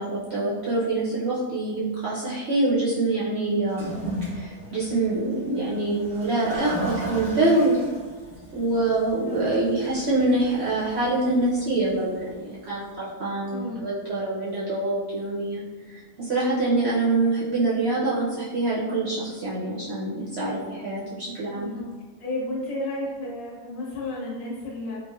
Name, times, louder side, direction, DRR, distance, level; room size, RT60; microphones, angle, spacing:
voice 1, 0.0-3.9 4.3-7.8 8.5-15.6 15.9-21.7, right 2 dB, 65° right, -8 dB, 0.6 m, -25 dB
Toilet flush, 3.6-12.9, right 1 dB, ahead, 0.7 m, -37 dB
voice 2, 13.5-13.8 17.2-17.3 21.5-21.9 22.2-25.0, left 1 dB, 40° left, -5 dB, 0.8 m, -32 dB
4.1 x 2.3 x 2.3 m, 1.3 s
omnidirectional pair, 1.8 m